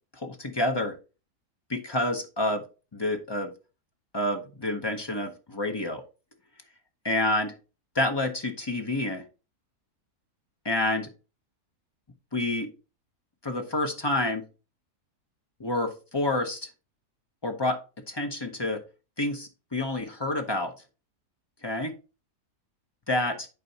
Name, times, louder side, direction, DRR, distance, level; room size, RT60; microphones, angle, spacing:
voice 1, 0.2-1.0 1.7-2.6 2.9-3.5 4.1-6.0 7.0-7.6 7.9-9.2 10.6-11.1 12.3-12.7 13.4-14.4 15.6-16.7 17.4-17.8 18.1-18.8 19.2-20.7 21.6-22.0 23.1-23.5, left 1 dB, 25° left, 4 dB, 0.6 m, -28 dB
11.0 x 4.4 x 2.8 m, 0.32 s
omnidirectional pair, 1.7 m